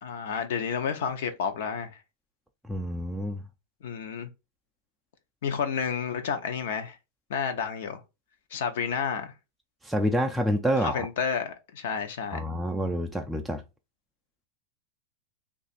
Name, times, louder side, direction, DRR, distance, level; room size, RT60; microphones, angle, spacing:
voice 1, 0.0-1.9 3.8-4.3 5.4-7.0 7.3-8.0 8.5-9.3 10.8-12.5, left 6 dB, 75° left, 0.7 m, -30 dB
voice 2, 2.7-3.4 9.8-11.0 12.3-13.6, equal, ahead, 0.3 m, -27 dB
2.8 x 2.4 x 4.1 m
supercardioid pair, 140°, 0 cm